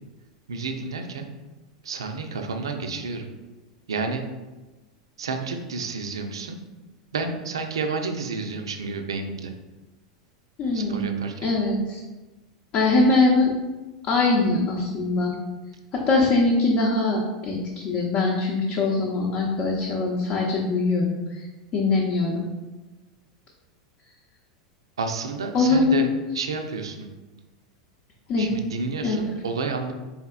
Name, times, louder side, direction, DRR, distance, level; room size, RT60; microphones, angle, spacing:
voice 1, 0.5-1.3 1.8-3.3 3.9-4.2 5.2-6.6 7.1-9.5 10.7-11.5 25.0-26.1 26.3-27.1 28.4-29.9, right 4 dB, 75° right, 5 dB, 0.4 m, -30 dB
voice 2, 10.6-11.2 11.4-12.0 12.7-13.5 14.1-15.3 15.9-21.4 21.7-22.4 25.5-26.1 28.3-28.5 29.0-29.2, left 3 dB, 40° left, -3 dB, 0.7 m, -22 dB
4.1 x 3.4 x 2.3 m, 1.1 s
figure-of-eight pair, 90°, 3 cm